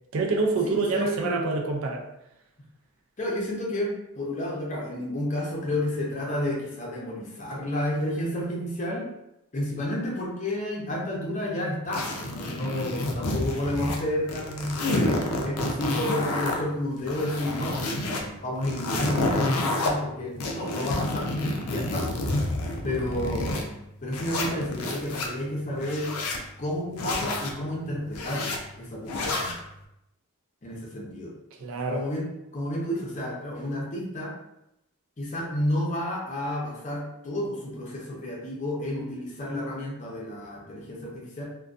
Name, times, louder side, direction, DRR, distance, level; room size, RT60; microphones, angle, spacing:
voice 1, 0.1-2.1 31.5-32.1, right 3 dB, 70° right, 1 dB, 0.4 m, -27 dB
voice 2, 0.6-1.6 3.2-9.0 9.5-14.9 15.4-21.3 21.7-22.1 22.8-23.7 24.0-26.1 26.6-29.5 30.6-31.4 31.9-34.3 35.2-41.4, left 1 dB, 35° left, -3 dB, 0.6 m, -31 dB
sound 1, 11.9-14.0 14.3-16.6 17.0-18.2 18.6-19.9 20.4-23.6 24.1-25.3 25.8-26.4 27.0-27.5 28.1-28.6 29.1-29.6, left 2 dB, 90° left, 0.4 m, -29 dB
2.5 x 2.2 x 2.4 m, 0.84 s
head